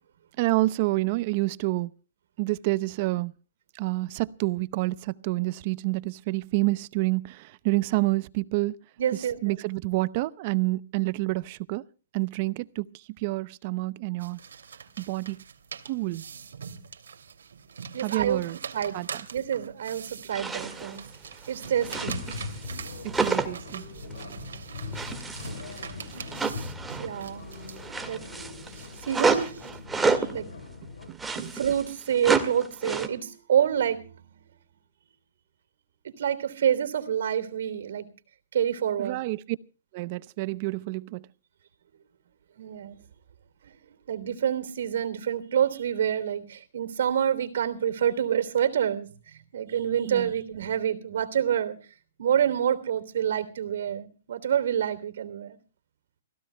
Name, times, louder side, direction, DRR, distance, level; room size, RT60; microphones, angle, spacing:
voice 1, 0.4-1.9 2.4-3.3 3.7-8.7 9.1-11.8 12.1-12.9 13.2-14.4 15.0-15.4 15.9-16.2 18.0-18.6 18.9-19.2 22.1-22.2 23.0-23.8 31.1-31.5 39.0-39.4 39.9-41.3 50.1-50.3, right 21 dB, 35° right, 0.7 m, -28 dB
voice 2, 9.0-9.6 17.9-18.4 18.7-19.0 19.3-21.1 21.5-22.1 27.0-27.5 28.1-28.2 29.0-29.5 30.0-30.5 31.5-34.3 36.0-38.1 38.5-39.2 42.6-43.0 43.6-43.7 44.1-51.8 52.2-55.6, right 9 dB, 65° right, 3.3 m, -27 dB
sound 1, 14.2-29.8, right 6 dB, 90° right, 2.7 m, -43 dB
sound 2, 20.3-21.0 21.3-22.7 23.0-23.7 24.1-24.3 24.9-27.2 27.5-30.4 31.0-33.1, right 4 dB, 5° right, 1.9 m, -30 dB
sound 3, 21.6-31.1, left 3 dB, 80° left, 5.0 m, -41 dB
29.0 x 16.5 x 2.3 m
hypercardioid pair, 160°, 0 cm